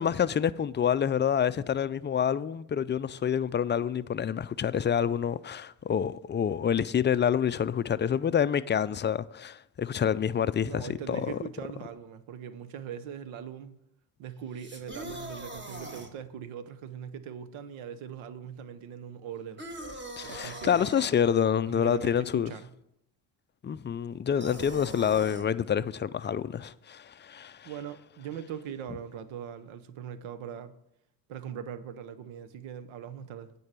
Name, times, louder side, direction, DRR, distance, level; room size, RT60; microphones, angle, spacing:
voice 1, 0.0-11.4 20.2-22.5 23.6-27.7, left 8 dB, 25° left, 0.4 m, -27 dB
voice 2, 10.6-13.8 14.2-19.6 20.2-20.9 21.7-22.7 27.6-30.8 31.3-33.5, right 8 dB, 80° right, 0.9 m, -41 dB
sound 1, 14.5-16.1 19.6-21.1 24.4-25.5, right 1 dB, 25° right, 1.5 m, -41 dB
9.4 x 4.7 x 7.5 m
supercardioid pair, 60°, 47 cm